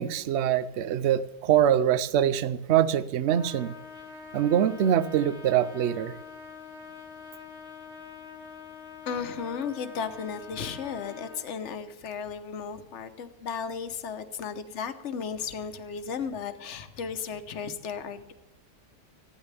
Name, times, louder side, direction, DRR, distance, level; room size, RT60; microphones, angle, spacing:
voice 1, 0.0-3.7 4.3-6.1, right 10 dB, 65° right, 15 dB, 0.6 m, -24 dB
Trumpet, 3.3-11.4, left 5 dB, 45° right, 3.3 m, -45 dB
voice 2, 9.1-18.3, left 6 dB, 50° left, 9 dB, 1.2 m, -35 dB
19.5 x 14.0 x 3.4 m, 0.95 s
omnidirectional pair, 1.8 m